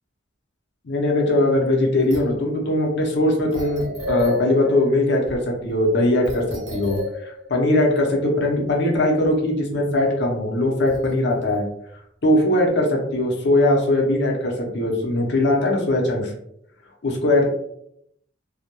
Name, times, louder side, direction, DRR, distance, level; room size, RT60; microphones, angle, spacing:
voice 1, 0.8-11.6 12.2-16.3 17.0-17.4, left 1 dB, 60° left, 0 dB, 0.6 m, -20 dB
sound 1, 2.0-2.4 3.1-3.2 3.5-5.4 5.7-5.9 6.2-8.8 9.2-9.3 10.6-11.6, left 1 dB, 85° right, 0.8 m, -33 dB
2.2 x 2.1 x 2.9 m, 0.73 s
head